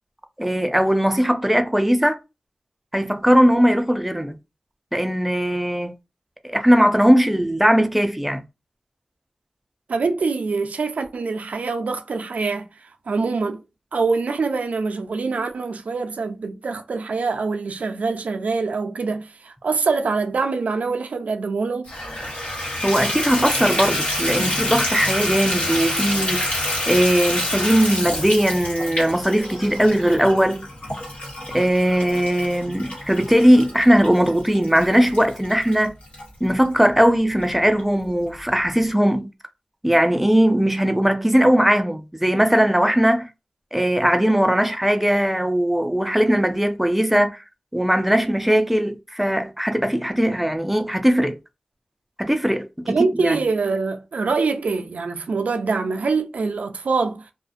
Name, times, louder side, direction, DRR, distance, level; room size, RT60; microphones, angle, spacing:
voice 1, 0.4-2.2 2.9-4.3 4.9-5.9 6.4-8.4 22.8-26.5 26.9-30.7 31.5-35.9 36.4-39.3 39.8-43.3 43.7-47.4 47.7-51.4 52.2-53.4, equal, 5° right, 0.4 m, -19 dB
voice 2, 9.9-12.7 13.1-13.6 13.9-21.9 24.4-24.5 52.9-57.3, right 4 dB, 90° right, 0.3 m, -24 dB
Water tap faucet / Bathtub (filling or washing), 21.9-36.2 36.8-36.9 37.4-37.5 37.8-37.9, left 1 dB, 65° left, 1.3 m, -27 dB
2.4 x 2.1 x 2.5 m
wide cardioid pair, 60°, 2 cm